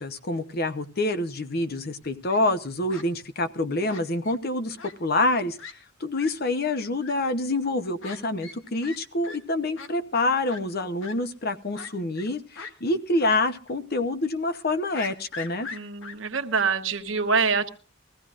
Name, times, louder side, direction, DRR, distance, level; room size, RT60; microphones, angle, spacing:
voice 1, 0.0-5.6 6.0-15.7, left 2 dB, 50° left, 11 dB, 0.9 m, -27 dB
Fowl, 2.0-2.4 2.9-3.1 3.9-4.4 4.8-4.9 5.2-5.3 5.6-5.7 6.2-6.3 7.0-7.1 8.0-8.2 8.4-8.6 8.8-9.0 9.2-9.4 9.8-9.9 10.5-10.6 11.0-11.1 11.7-12.3 12.6-12.7 13.2-13.4 13.7-13.8 14.9-16.1, left 4 dB, 80° left, 1.7 m, -39 dB
voice 2, 15.7-17.7, right 5 dB, 75° right, 6 dB, 1.2 m, -25 dB
21.5 x 15.5 x 2.5 m, 0.35 s
head